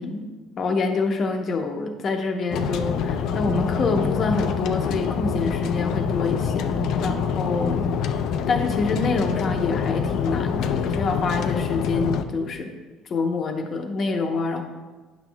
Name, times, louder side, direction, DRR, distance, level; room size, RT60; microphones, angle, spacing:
voice 1, 0.0-8.2 8.5-12.7 13.1-14.6, left 3 dB, 45° left, 4 dB, 0.8 m, -26 dB
sound 1, 2.5-12.2, left 6 dB, 65° left, 0.4 m, -25 dB
9.2 x 6.2 x 2.3 m, 1.3 s
cardioid pair, 105°, 0 cm